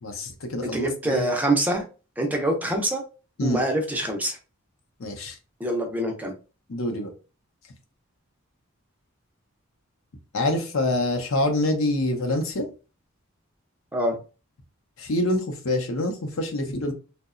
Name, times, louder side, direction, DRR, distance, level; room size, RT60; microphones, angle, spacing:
voice 1, 0.0-1.2 3.4-3.6 5.0-5.4 6.7-7.1 10.3-12.7 15.0-16.9, left 1 dB, 70° left, 4 dB, 0.6 m, -26 dB
voice 2, 0.6-1.8 2.2-3.0 3.4-4.4 5.6-6.3 13.9-14.2, right 1 dB, 10° right, 1 dB, 0.4 m, -25 dB
2.7 x 2.1 x 2.4 m, 0.34 s
head